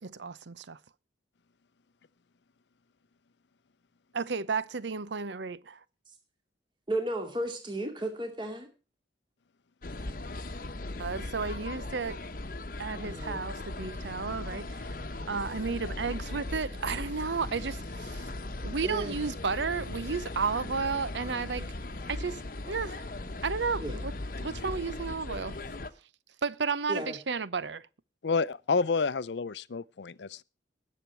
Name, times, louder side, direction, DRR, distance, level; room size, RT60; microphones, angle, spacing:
voice 1, 0.0-0.8 4.1-5.8 11.0-12.2 12.8-14.9 15.3-18.3 18.6-21.7 22.1-23.1 23.4-24.1 24.4-25.6 26.4-27.8, right 5 dB, 80° right, 0.7 m, -33 dB
voice 2, 6.9-8.7 13.0-13.4 18.8-19.2 23.8-24.0 26.9-27.2, right 1 dB, 25° right, 2.4 m, -34 dB
sound 1, 9.8-25.9, left 2 dB, 50° left, 1.0 m, -38 dB
voice 3, 28.2-30.4, left 4 dB, 75° left, 0.6 m, -29 dB
20.0 x 7.3 x 4.5 m
head